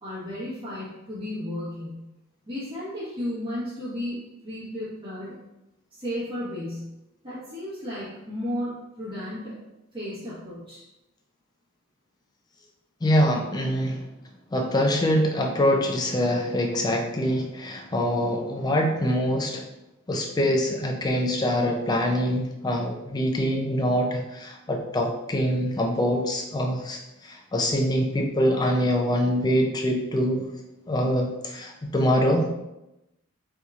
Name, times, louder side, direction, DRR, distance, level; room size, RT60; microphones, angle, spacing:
voice 1, 0.0-2.0 2.5-5.4 6.0-6.9 7.2-9.6 9.9-10.8, left 1 dB, 25° right, -11 dB, 1.0 m, -34 dB
voice 2, 13.0-14.1 14.5-19.6 20.1-30.5 30.9-32.5, equal, 20° left, 1 dB, 0.4 m, -24 dB
4.4 x 2.7 x 2.4 m, 0.93 s
head